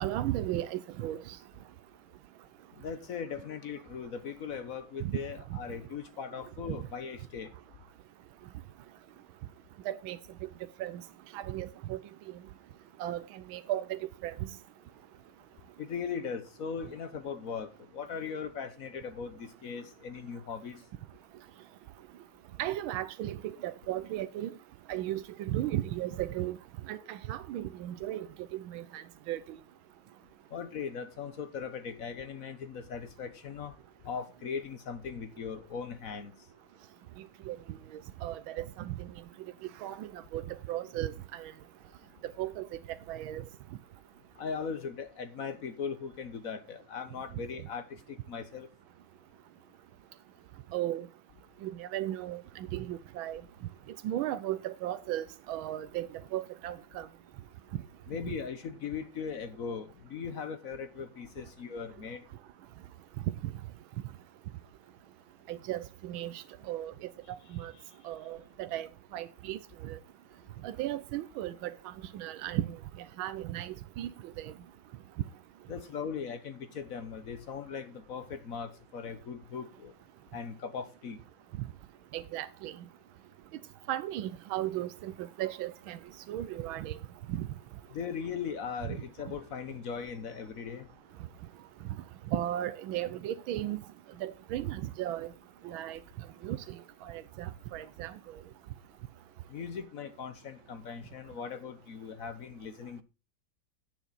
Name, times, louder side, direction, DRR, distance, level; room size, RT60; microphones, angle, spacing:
voice 1, 0.0-1.4 5.0-5.2 5.5-5.6 9.8-10.2 10.8-11.0 11.3-12.0 13.0-14.4 22.6-24.5 24.9-26.6 26.9-28.3 28.5-29.6 37.5-37.6 38.2-39.1 39.8-41.5 42.4-43.4 50.7-51.1 51.6-53.4 54.0-57.1 65.5-67.1 67.5-67.7 68.0-70.0 70.6-72.8 73.2-74.1 74.4-74.5 82.1-82.7 83.9-86.0 86.3-87.0 87.3-87.5 92.3-93.8 94.2-95.3 95.6-96.0 96.4-98.1, right 13 dB, 90° right, 1.5 m, -36 dB
voice 2, 2.8-7.5 15.8-20.8 30.5-33.7 34.0-36.3 44.4-48.7 58.1-62.2 67.5-67.6 75.7-79.9 80.3-81.2 87.9-90.9 99.5-103.0, left 6 dB, 50° left, 1.2 m, -39 dB
10.0 x 9.1 x 4.1 m
omnidirectional pair, 2.1 m